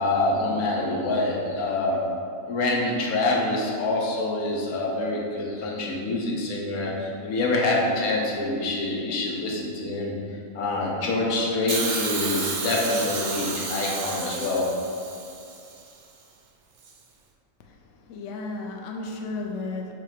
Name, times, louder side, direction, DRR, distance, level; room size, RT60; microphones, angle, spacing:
voice 1, 0.0-2.1 2.5-10.1 10.5-14.8, left 2 dB, 85° left, -2 dB, 1.4 m, -26 dB
Hiss, 11.7-15.8 16.8-16.9, right 4 dB, 60° right, 0.5 m, -31 dB
voice 2, 17.6-19.9, left 3 dB, 65° left, 1 dB, 0.9 m, -34 dB
4.9 x 4.4 x 5.1 m, 2.5 s
omnidirectional pair, 1.5 m